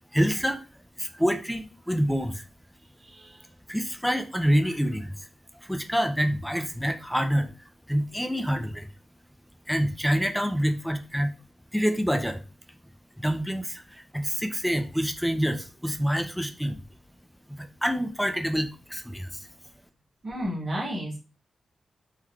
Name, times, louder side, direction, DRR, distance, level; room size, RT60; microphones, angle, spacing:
voice 1, 0.1-0.6 1.0-2.4 3.7-5.3 5.5-7.5 7.9-8.9 9.7-11.3 11.7-12.4 13.2-16.8 17.6-19.5, equal, ahead, 6 dB, 0.3 m, -27 dB
voice 2, 3.0-3.4 4.6-4.7 20.2-21.2, equal, 40° right, -3 dB, 1.2 m, -33 dB
3.7 x 3.0 x 2.3 m, 0.33 s
wide cardioid pair, 170°, 0 cm